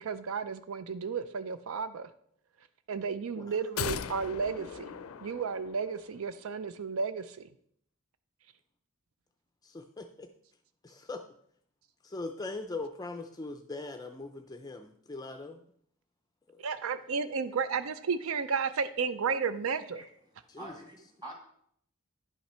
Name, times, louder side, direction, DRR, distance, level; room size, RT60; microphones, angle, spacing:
voice 1, 0.0-2.1 2.9-4.9 5.2-7.4 16.6-20.0, right 5 dB, 75° right, 12 dB, 0.5 m, -33 dB
sound 1, 3.8-6.1 6.4-6.5, left 7 dB, 85° left, 0.4 m, -38 dB
voice 2, 9.6-10.3 10.8-11.2 12.0-15.6 20.5-20.7, left 3 dB, 15° left, 6 dB, 0.4 m, -41 dB
voice 3, 20.4-21.3, right 1 dB, 20° right, 1 dB, 2.0 m, -46 dB
10.5 x 5.8 x 4.3 m, 0.67 s
head